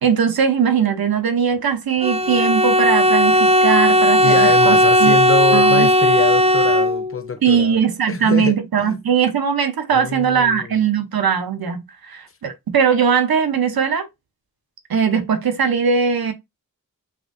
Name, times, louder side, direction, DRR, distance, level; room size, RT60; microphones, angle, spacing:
voice 1, 0.0-5.1 5.5-5.9 7.4-14.1 14.9-16.3, right 7 dB, 85° right, 0.8 m, -19 dB
Bowed string instrument, 2.0-7.3, equal, 20° right, 0.4 m, -15 dB
voice 2, 4.2-7.8 8.1-9.0 9.9-10.8, left 4 dB, 40° left, 0.8 m, -25 dB
5.9 x 2.6 x 2.5 m
cardioid pair, 45°, 35 cm